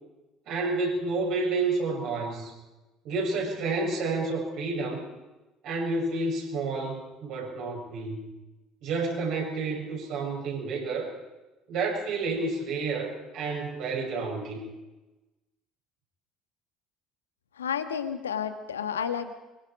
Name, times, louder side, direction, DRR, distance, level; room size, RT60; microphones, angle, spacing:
voice 1, 0.5-2.5 3.0-5.0 5.6-8.2 8.8-11.2 11.7-14.6, right 3 dB, 60° right, -2 dB, 7.7 m, -30 dB
voice 2, 17.5-19.4, left 7 dB, 80° left, 9 dB, 1.5 m, -31 dB
24.5 x 23.0 x 5.2 m, 1.1 s
figure-of-eight pair, 60°, 0 cm